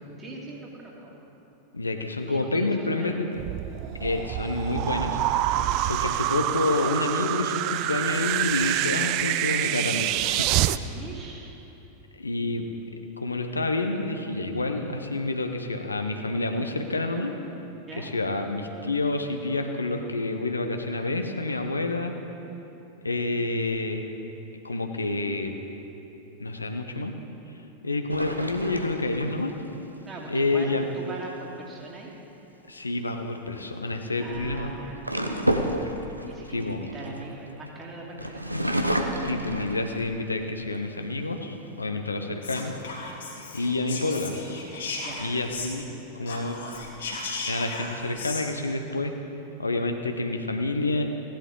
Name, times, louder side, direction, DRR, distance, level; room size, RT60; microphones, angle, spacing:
voice 1, 0.2-1.1 2.3-3.2 10.9-11.5 17.9-18.1 30.1-32.1 34.2-35.5 36.3-38.9 45.0-45.3, right 2 dB, 20° right, -2 dB, 2.3 m, -41 dB
voice 2, 1.7-3.4 4.0-5.2 5.9-10.5 12.1-12.7 13.2-17.3 18.0-22.2 23.0-24.1 24.6-25.5 26.4-27.1 27.8-29.5 30.3-30.9 32.7-34.7 36.5-36.8 39.2-42.7 43.5-44.4 45.2-45.8 46.1-46.6 47.4-49.1 49.6-51.0, left 2 dB, 80° left, 5 dB, 0.7 m, -28 dB
sound 1, 3.4-10.8, right 14 dB, 40° right, 0.3 m, -26 dB
sound 2, 28.1-29.7 32.6-32.9 33.9-37.7 38.2-40.3 40.8-40.9 41.3-41.9, right 1 dB, 85° right, 0.7 m, -30 dB
Whispering, 42.4-45.9 46.2-48.4, left 3 dB, 65° left, 1.7 m, -36 dB
16.0 x 11.5 x 3.8 m, 3.0 s
figure-of-eight pair, 90°, 0 cm